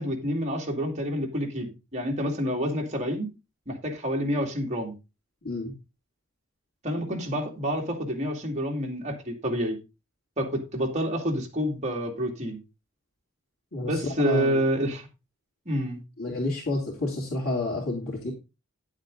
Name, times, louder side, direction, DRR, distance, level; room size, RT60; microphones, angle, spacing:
voice 1, 0.0-3.3 3.7-4.9 6.8-9.8 10.4-12.6 13.8-15.1 15.7-16.0, equal, 35° right, 2.4 m, -28 dB
voice 2, 13.7-14.6 16.2-18.3, left 2 dB, 75° left, 3.1 m, -29 dB
10.5 x 7.4 x 3.8 m
head